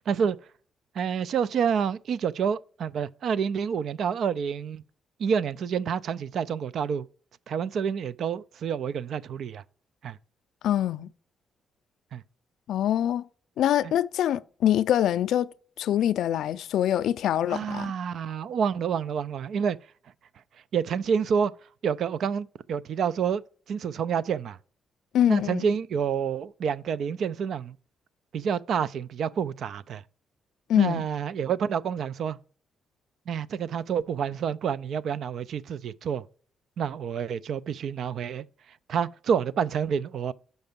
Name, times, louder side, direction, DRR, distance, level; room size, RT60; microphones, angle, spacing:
voice 1, 0.1-0.4 1.0-4.8 5.2-7.1 7.5-9.6 10.0-10.2 12.1-12.2 13.8-13.9 17.5-19.8 20.7-21.5 21.8-23.4 23.7-24.6 25.3-27.8 28.3-30.0 30.8-32.4 33.3-36.2 36.8-38.5 38.9-40.3, right 7 dB, 65° right, 0.4 m, -28 dB
voice 2, 10.6-11.1 12.7-13.2 13.6-15.5 15.8-17.9 25.1-25.6 30.7-31.1, left 11 dB, 80° left, 0.3 m, -24 dB
5.8 x 5.3 x 5.2 m
cardioid pair, 115°, 0 cm